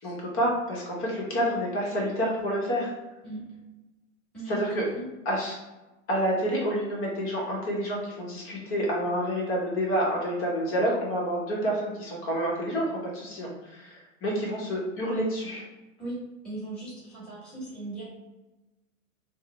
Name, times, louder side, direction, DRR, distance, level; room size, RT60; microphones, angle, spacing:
voice 1, 0.0-2.9 4.5-4.8 5.2-5.6 6.1-15.6, equal, 30° left, -3 dB, 1.0 m, -28 dB
voice 2, 4.3-5.1 16.0-16.2 16.4-18.0, right 2 dB, ahead, -11 dB, 1.4 m, -38 dB
3.6 x 2.0 x 3.1 m, 1.1 s
hypercardioid pair, 105°, 41 cm